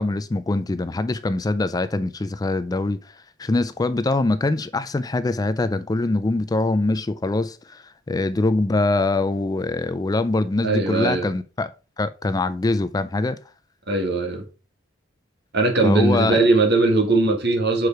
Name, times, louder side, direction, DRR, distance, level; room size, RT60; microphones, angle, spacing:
voice 1, 0.0-11.7 12.0-13.4 15.8-16.4, left 2 dB, 20° left, 0.3 m, -23 dB
voice 2, 10.6-11.3 13.9-14.4 15.5-17.9, right 2 dB, 55° right, 1.8 m, -20 dB
6.5 x 4.8 x 4.6 m
head